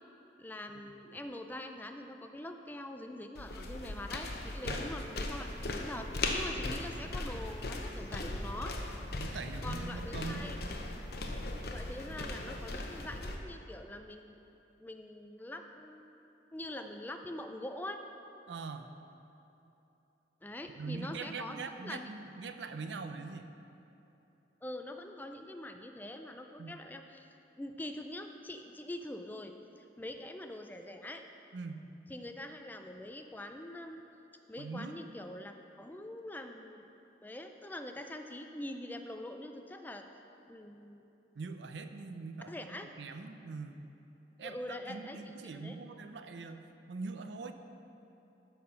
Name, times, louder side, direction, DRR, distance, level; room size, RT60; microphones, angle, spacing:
voice 1, 0.4-8.8 9.6-10.6 11.7-14.3 14.8-18.0 20.4-22.0 24.6-27.3 27.6-31.2 32.1-34.0 34.5-36.9 37.2-40.0 40.5-41.0 42.5-42.9 44.4-45.8, left 1 dB, 10° left, 6 dB, 0.3 m, -44 dB
sound 1, 3.3-13.3, left 2 dB, 60° left, 0.8 m, -38 dB
voice 2, 9.2-10.5 18.5-18.9 20.8-23.5 26.6-26.7 31.5-31.8 34.6-34.9 41.4-43.8 44.4-47.5, right 4 dB, 85° right, 8 dB, 0.5 m, -42 dB
12.5 x 4.4 x 5.6 m, 2.9 s
head